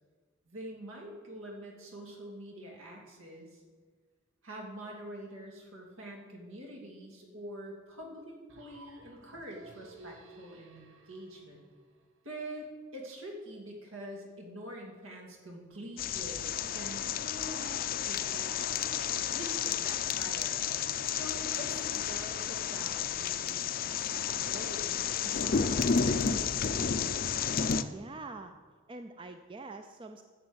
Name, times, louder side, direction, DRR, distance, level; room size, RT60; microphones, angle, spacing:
voice 1, 0.5-3.6 4.4-11.6 12.2-18.9 19.3-20.6 21.1-26.7, right 1 dB, 85° right, 1 dB, 2.7 m, -45 dB
sound 1, 8.5-12.4, right 2 dB, 70° right, 1.2 m, -55 dB
sound 2, 16.0-27.8, left 7 dB, 45° left, 0.5 m, -31 dB
voice 2, 27.8-28.5 28.9-30.2, right 3 dB, 25° right, 7 dB, 0.4 m, -45 dB
11.0 x 7.4 x 7.9 m, 1.5 s
head